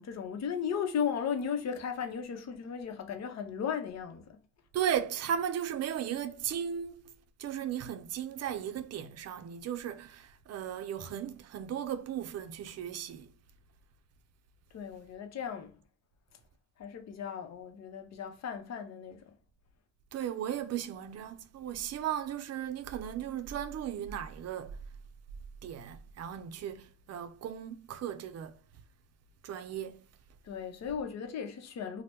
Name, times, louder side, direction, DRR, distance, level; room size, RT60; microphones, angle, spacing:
voice 1, 0.0-4.4 14.7-15.7 16.8-19.3 30.4-32.0, left 7 dB, 60° left, 0.7 m, -36 dB
voice 2, 4.7-7.1 7.4-13.3 20.1-24.8 25.6-28.6 29.4-30.1, right 9 dB, 55° right, 0.5 m, -36 dB
2.8 x 2.1 x 3.3 m
cardioid pair, 90°, 30 cm